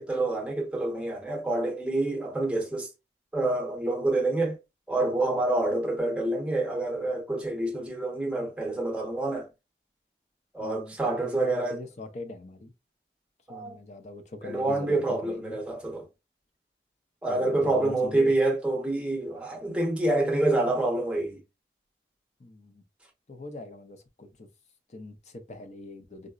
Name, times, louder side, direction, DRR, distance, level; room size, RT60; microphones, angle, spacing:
voice 1, 0.0-2.9 3.3-4.6 4.9-9.5 10.5-11.8 13.5-13.8 14.4-16.1 17.2-21.4, right 2 dB, 5° right, 0.7 m, -27 dB
voice 2, 10.6-12.7 13.5-15.6 17.3-18.3 22.4-22.8 23.3-24.5 24.9-26.3, left 1 dB, 40° left, 0.5 m, -42 dB
3.8 x 2.0 x 2.3 m
head